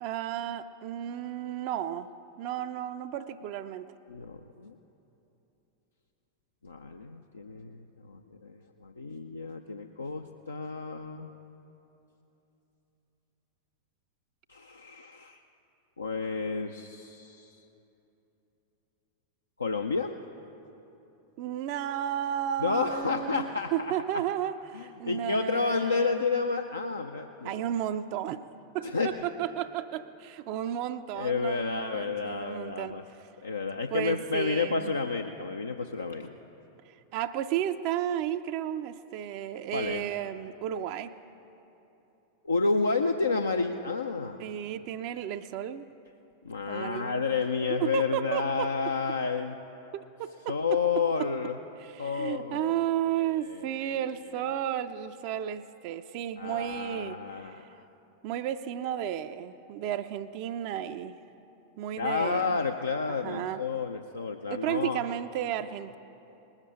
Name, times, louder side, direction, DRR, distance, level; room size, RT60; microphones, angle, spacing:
voice 1, 0.0-2.1 2.4-3.9 21.4-26.2 27.4-28.4 28.7-33.0 33.9-34.9 36.9-41.1 44.4-45.9 46.7-47.3 47.7-48.7 49.9-50.8 51.2-51.3 51.8-57.7 58.2-61.2 61.8-62.6 63.1-63.6 64.5-66.0, right 11 dB, 45° right, 8 dB, 0.4 m, -33 dB
voice 2, 4.1-4.7 6.6-11.3 14.5-15.4 16.0-17.6 19.6-20.1 22.6-24.2 24.7-27.6 28.8-29.1 31.1-33.0 33.4-36.3 39.7-40.0 42.4-44.4 46.4-49.5 50.5-51.6 52.0-52.8 53.2-54.0 56.4-57.8 62.0-65.0, left 4 dB, 75° left, 5 dB, 0.5 m, -31 dB
19.5 x 7.3 x 6.4 m, 3.0 s
figure-of-eight pair, 90°, 0 cm